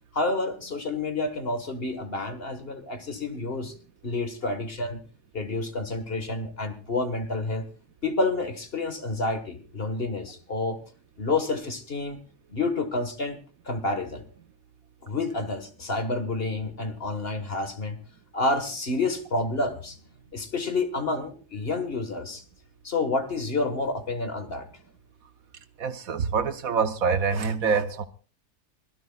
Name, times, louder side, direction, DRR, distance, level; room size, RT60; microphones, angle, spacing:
voice 1, 0.1-3.7 4.0-5.0 5.3-7.6 8.0-10.8 11.2-12.2 12.5-13.4 13.6-14.2 15.0-18.0 18.3-20.0 20.3-22.4 22.8-24.7, left 2 dB, 40° left, 1.7 m, -29 dB
voice 2, 25.8-28.1, right 5 dB, 65° right, 1.3 m, -25 dB
24.0 x 17.0 x 2.4 m
omnidirectional pair, 1.7 m